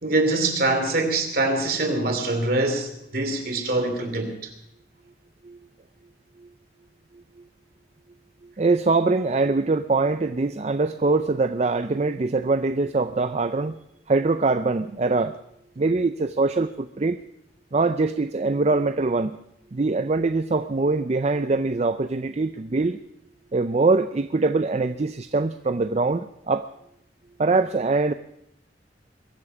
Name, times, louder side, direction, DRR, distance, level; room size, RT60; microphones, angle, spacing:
voice 1, 0.0-4.3, right 2 dB, 55° right, 5 dB, 2.9 m, -24 dB
voice 2, 8.6-13.8 14.1-15.3 15.8-17.2 17.7-19.4 19.7-23.0 23.5-26.7 27.4-28.1, right 3 dB, 35° right, 11 dB, 0.5 m, -23 dB
22.0 x 8.6 x 7.1 m, 0.80 s
head